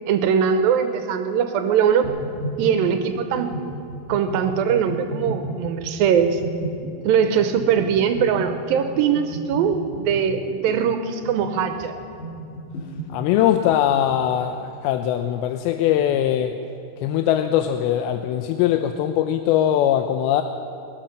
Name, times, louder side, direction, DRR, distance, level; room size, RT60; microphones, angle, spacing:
voice 1, 0.1-2.1 2.6-3.5 4.1-6.4 7.1-11.9, right 7 dB, 80° right, 7 dB, 2.4 m, -21 dB
sound 1, 2.0-14.3, right 1 dB, 65° left, 3.4 m, -34 dB
voice 2, 13.1-16.6 17.0-20.4, left 11 dB, 85° left, 7 dB, 2.5 m, -21 dB
21.0 x 10.5 x 6.6 m, 2.7 s
omnidirectional pair, 4.4 m